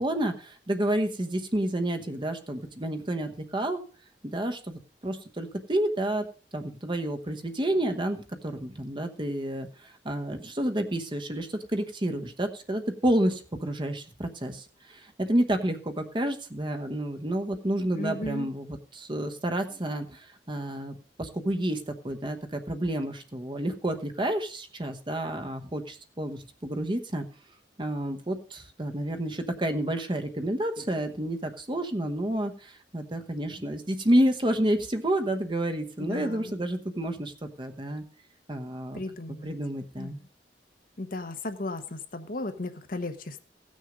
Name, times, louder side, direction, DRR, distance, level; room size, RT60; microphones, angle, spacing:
voice 1, 0.0-3.8 4.2-6.2 6.5-27.3 27.8-37.3 37.6-38.0 38.5-39.0 39.4-40.2, right 1 dB, 25° right, 7 dB, 1.1 m, -30 dB
voice 2, 17.9-18.5 36.0-36.5 38.9-39.5 40.0-40.1 41.0-43.4, left 2 dB, 50° left, 8 dB, 1.0 m, -35 dB
16.0 x 6.4 x 5.1 m, 0.39 s
head